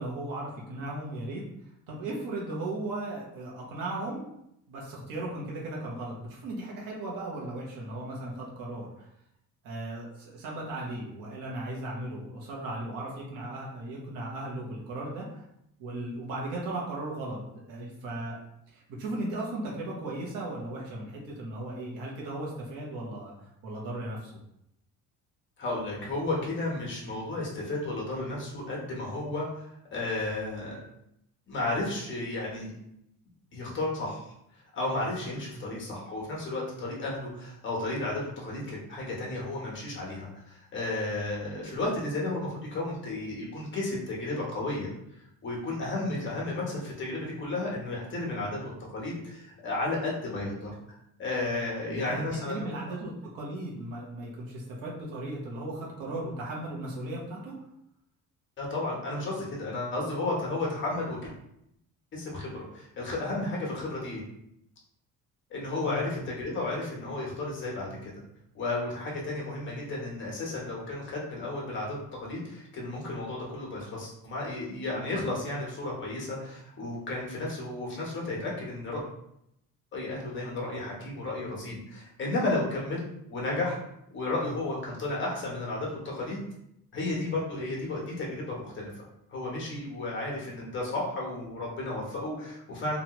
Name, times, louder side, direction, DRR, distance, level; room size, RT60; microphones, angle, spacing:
voice 1, 0.0-1.4 1.9-4.3 4.7-9.1 9.6-15.4 15.8-18.4 18.7-23.3 23.6-24.3 35.6-35.7 51.9-57.5 65.8-66.0, right 2 dB, 80° right, -4 dB, 1.0 m, -36 dB
voice 2, 25.6-30.8 31.5-32.7 33.5-34.3 34.7-44.9 45.4-50.7 51.2-52.7 58.6-61.3 62.1-64.2 65.5-68.1 68.5-79.0 79.9-83.8 84.1-86.4 86.9-88.9 89.3-93.0, left 2 dB, 35° left, -3 dB, 1.0 m, -33 dB
3.1 x 2.4 x 2.9 m, 0.78 s
cardioid pair, 145°, 33 cm